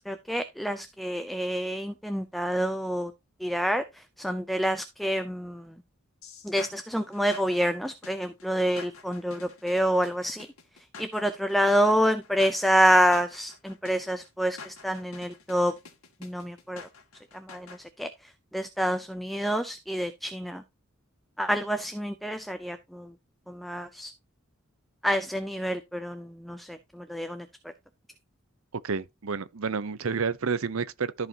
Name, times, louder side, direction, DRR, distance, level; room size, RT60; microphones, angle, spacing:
voice 1, 0.1-3.1 3.4-5.7 6.4-10.5 11.0-15.7 16.2-16.8 17.3-18.1 18.5-20.6 21.4-23.1 23.5-24.1 25.0-27.5, equal, ahead, 0.5 m, -27 dB
sound 1, 6.2-17.8, left 5 dB, 80° left, 2.1 m, -47 dB
voice 2, 28.8-31.3, right 5 dB, 70° right, 0.7 m, -30 dB
14.0 x 4.9 x 2.8 m
head